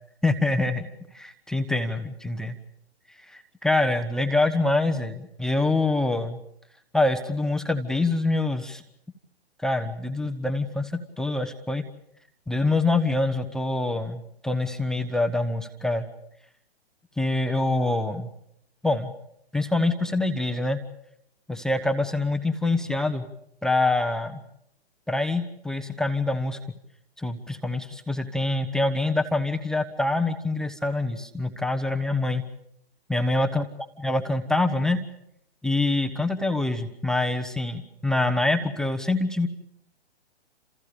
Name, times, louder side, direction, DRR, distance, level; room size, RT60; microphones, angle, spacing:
voice 1, 0.2-0.9 1.1-2.6 3.3-6.4 6.9-8.8 9.6-11.8 12.5-16.1 17.2-18.3 18.8-19.1 19.5-20.8 21.5-23.2 23.6-24.4 25.1-26.6 27.2-32.4 33.1-33.6 34.0-35.0 35.6-39.5, left 2 dB, ahead, 7 dB, 1.0 m, -25 dB
30.0 x 28.0 x 5.0 m, 0.73 s
hypercardioid pair, 150°, 33 cm